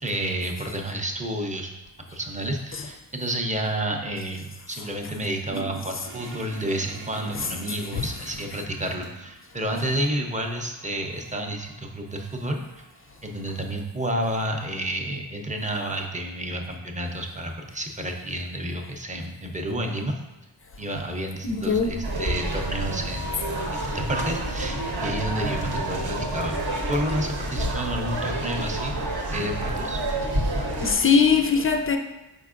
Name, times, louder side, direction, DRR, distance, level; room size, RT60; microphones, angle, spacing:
voice 1, 0.0-1.7 2.1-12.6 13.2-20.2 20.8-23.3 23.7-26.6 26.9-29.0 29.3-30.0, right 1 dB, 15° right, 0.6 m, -30 dB
sound 1, 5.5-13.5, right 3 dB, 90° right, 0.8 m, -45 dB
voice 2, 21.4-22.1 30.7-32.0, left 5 dB, 30° left, 0.4 m, -22 dB
sound 2, 22.0-30.9, right 1 dB, 55° right, 0.9 m, -28 dB
4.5 x 4.3 x 2.4 m
cardioid pair, 55°, 47 cm